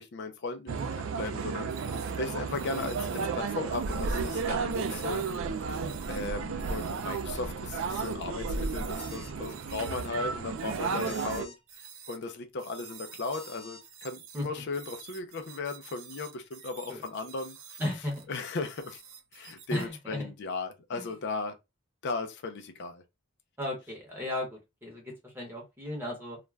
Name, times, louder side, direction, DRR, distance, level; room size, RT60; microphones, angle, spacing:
voice 1, 0.0-5.3 6.1-17.6 18.3-19.0 19.3-21.6 22.0-23.0, left 3 dB, 55° left, 0.4 m, -36 dB
sound 1, 0.7-11.5, right 5 dB, 60° right, 0.4 m, -33 dB
sound 2, 1.7-2.2 2.5-3.3 3.7-5.4 5.7-6.3 6.6-7.2 7.6-8.2 8.5-10.2 10.6-12.2 12.6-18.3 18.6-19.9, right 7 dB, 80° right, 0.8 m, -49 dB
voice 2, 5.8-6.2 10.9-11.1 14.3-14.5 16.9-17.0 17.8-18.3 19.7-20.3 20.9-21.1 23.6-26.4, left 1 dB, 10° right, 0.9 m, -36 dB
sound 3, 9.0-9.4 11.0-11.6 13.3-13.8, left 3 dB, 25° left, 0.9 m, -49 dB
2.4 x 2.1 x 3.2 m
head